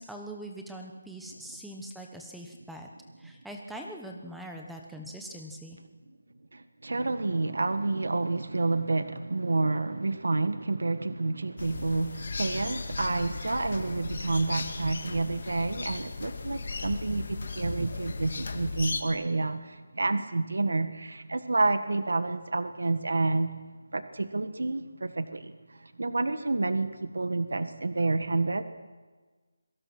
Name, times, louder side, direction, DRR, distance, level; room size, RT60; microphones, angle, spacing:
voice 1, 0.0-2.9 3.2-5.8, right 1 dB, ahead, 2 dB, 1.1 m, -42 dB
voice 2, 6.5-23.5 23.9-28.6, right 3 dB, 85° right, 10 dB, 1.7 m, -29 dB
sound 1, 11.6-19.0, left 4 dB, 40° left, 1.9 m, -36 dB
27.5 x 23.5 x 6.2 m, 1.4 s
figure-of-eight pair, 180°, 0 cm